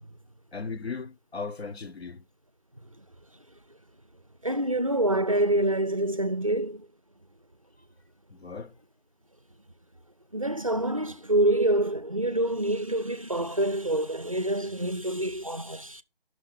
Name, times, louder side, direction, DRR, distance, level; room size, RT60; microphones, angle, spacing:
voice 1, 0.5-2.2 8.3-8.8, left 4 dB, 90° left, 0.9 m, -37 dB
voice 2, 4.4-6.9 10.3-16.0, right 1 dB, 35° right, 0.4 m, -26 dB
11.5 x 6.2 x 3.6 m
figure-of-eight pair, 160°, 31 cm